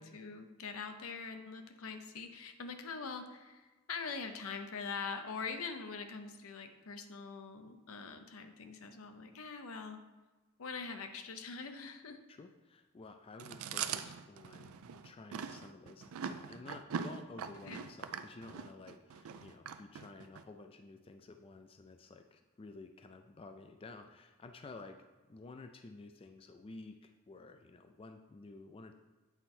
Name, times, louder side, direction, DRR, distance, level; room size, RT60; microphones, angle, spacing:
voice 1, 0.0-10.0 10.6-12.2 17.7-17.8, left 5 dB, 75° left, 7 dB, 0.7 m, -43 dB
voice 2, 12.3-14.7 15.0-25.0 25.3-28.9, left 3 dB, 25° left, 6 dB, 0.3 m, -52 dB
Chewing mastication, 13.4-20.4, right 7 dB, 80° right, 0.4 m, -42 dB
8.1 x 4.4 x 4.3 m, 1.2 s
head